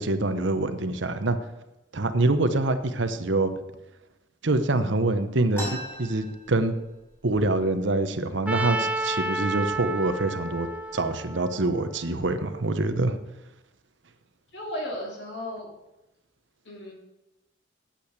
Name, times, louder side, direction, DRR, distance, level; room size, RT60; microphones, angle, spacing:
voice 1, 0.0-1.4 1.9-3.5 4.4-5.7 6.0-6.7 7.2-10.7 10.9-13.2, right 2 dB, 65° right, 10 dB, 0.9 m, -25 dB
sound 1, 5.5-7.1 7.5-7.6 7.8-8.5 9.1-9.2 9.9-10.1 10.6-11.0, equal, 10° left, 5.5 m, -38 dB
Trumpet, 8.5-12.5, right 2 dB, 5° right, 0.5 m, -31 dB
voice 2, 14.5-15.7 16.6-16.9, left 1 dB, 60° left, -1 dB, 3.3 m, -34 dB
8.7 x 8.6 x 8.2 m, 0.97 s
head